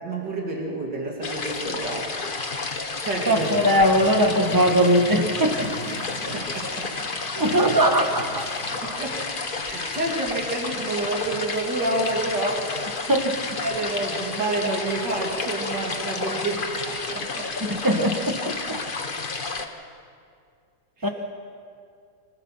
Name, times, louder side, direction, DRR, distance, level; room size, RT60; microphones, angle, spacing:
voice 1, 0.0-2.3 3.0-3.5 6.1-6.9 7.4-7.6 8.8-9.2 9.6-13.0 13.6-17.8 21.0-21.1, right 2 dB, 85° right, -1 dB, 3.4 m, -29 dB
sound 1, 1.2-19.7, left 3 dB, 35° left, 1.3 m, -31 dB
Car, 3.2-8.9, left 1 dB, 80° left, 5.5 m, -39 dB
voice 2, 3.3-5.6 7.3-8.4 8.8-9.0 13.1-13.3 17.7-18.4 18.7-18.8 21.0-21.1, equal, 10° right, 4 dB, 1.6 m, -20 dB
25.5 x 20.0 x 5.8 m, 2.3 s
omnidirectional pair, 1.8 m